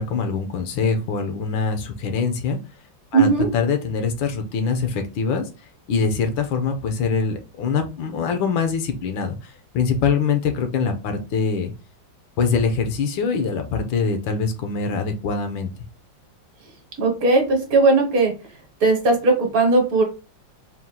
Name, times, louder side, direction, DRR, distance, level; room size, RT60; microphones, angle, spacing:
voice 1, 0.0-2.6 3.1-3.3 3.5-5.4 5.9-11.7 12.4-15.7, left 5 dB, 80° left, 6 dB, 1.6 m, -23 dB
voice 2, 3.1-3.5 17.0-18.3 18.8-20.0, right 3 dB, 55° right, 3 dB, 1.4 m, -17 dB
4.3 x 2.4 x 3.8 m, 0.30 s
omnidirectional pair, 2.1 m